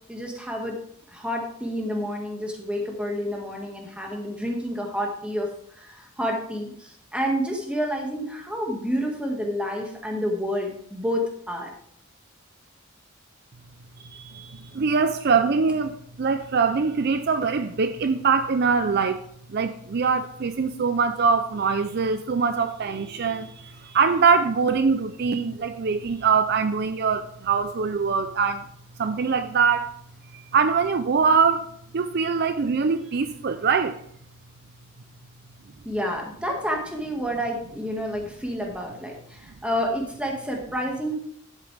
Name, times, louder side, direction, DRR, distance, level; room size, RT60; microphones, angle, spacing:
voice 1, 0.1-0.8 1.1-11.7 35.8-41.1, equal, 5° right, 1.8 m, -29 dB
voice 2, 14.1-19.2 19.5-28.6 29.0-30.0 30.3-31.7 31.9-34.0, right 5 dB, 50° right, 0.4 m, -23 dB
11.0 x 8.2 x 3.4 m
head